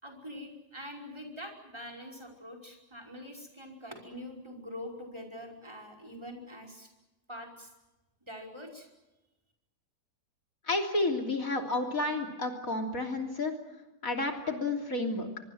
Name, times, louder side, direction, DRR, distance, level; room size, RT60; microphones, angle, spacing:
voice 1, 0.0-6.9 7.3-7.7 8.2-8.9, left 1 dB, 15° right, 2 dB, 5.4 m, -44 dB
voice 2, 10.7-13.5 14.0-15.3, left 2 dB, 55° left, 3 dB, 3.6 m, -31 dB
24.5 x 24.0 x 7.7 m, 1.0 s
omnidirectional pair, 1.7 m